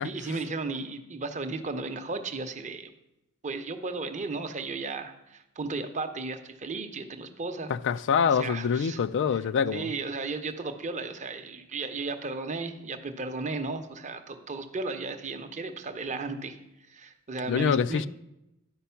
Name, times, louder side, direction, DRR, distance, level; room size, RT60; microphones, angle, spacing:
voice 1, 0.0-2.9 3.4-7.7 8.2-9.0 9.3-9.4 9.7-16.6 16.9-18.0, right 3 dB, 35° right, 0.7 m, -35 dB
voice 2, 7.7-9.9 17.5-18.1, left 6 dB, 55° left, 0.3 m, -25 dB
11.5 x 5.1 x 5.7 m
head